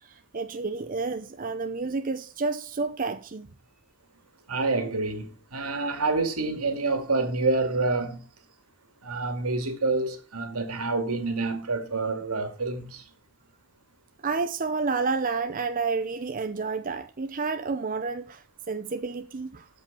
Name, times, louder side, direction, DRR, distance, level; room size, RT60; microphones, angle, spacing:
voice 1, 0.0-3.5 14.2-19.7, right 4 dB, 40° right, 0.6 m, -30 dB
voice 2, 4.5-8.2 9.0-13.0, right 3 dB, 85° right, 2.4 m, -27 dB
13.5 x 5.3 x 6.8 m
head